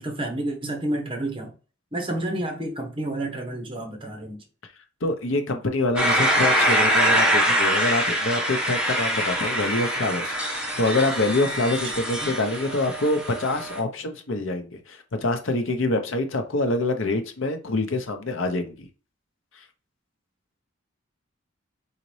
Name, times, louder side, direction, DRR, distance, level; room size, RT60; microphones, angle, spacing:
voice 1, 0.0-1.5 1.9-4.4 11.8-11.9 12.2-12.3, right 1 dB, 25° right, 1.0 m, -30 dB
voice 2, 5.0-18.8, left 2 dB, 70° left, 0.8 m, -25 dB
sound 1, 6.0-13.8, equal, 5° right, 1.1 m, -24 dB
4.1 x 4.0 x 3.1 m
head